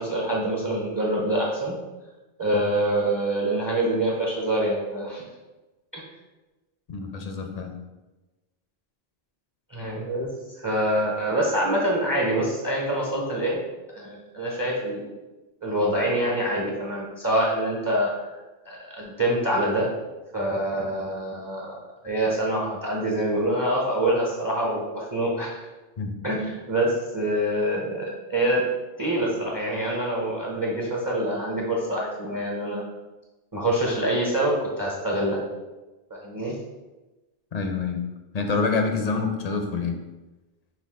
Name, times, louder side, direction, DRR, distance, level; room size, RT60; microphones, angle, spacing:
voice 1, 0.0-1.7 2.4-5.2 5.9-6.0 9.7-10.3 10.6-13.6 13.9-15.0 15.6-18.1 18.7-19.9 20.3-21.8 22.0-25.7 26.2-28.6 29.0-32.8 33.5-35.4 36.1-36.5, right 1 dB, 25° right, -3 dB, 0.7 m, -25 dB
voice 2, 6.9-7.8 26.0-26.2 37.5-38.0 38.3-40.0, left 4 dB, 50° left, 4 dB, 0.5 m, -27 dB
5.8 x 2.5 x 3.6 m, 1.1 s
omnidirectional pair, 1.0 m